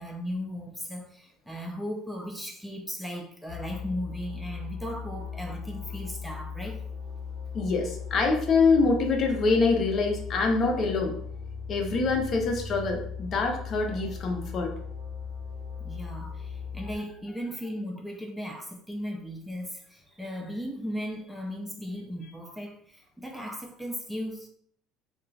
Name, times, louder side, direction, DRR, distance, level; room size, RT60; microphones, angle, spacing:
voice 1, 0.0-6.8 15.8-24.5, equal, ahead, 1 dB, 0.4 m, -36 dB
sound 1, 3.5-17.0, left 5 dB, 25° left, 1.0 m, -38 dB
voice 2, 7.5-11.2 11.7-14.7, left 4 dB, 45° left, 2 dB, 0.6 m, -25 dB
2.3 x 2.2 x 3.2 m, 0.64 s
supercardioid pair, 105°, 0 cm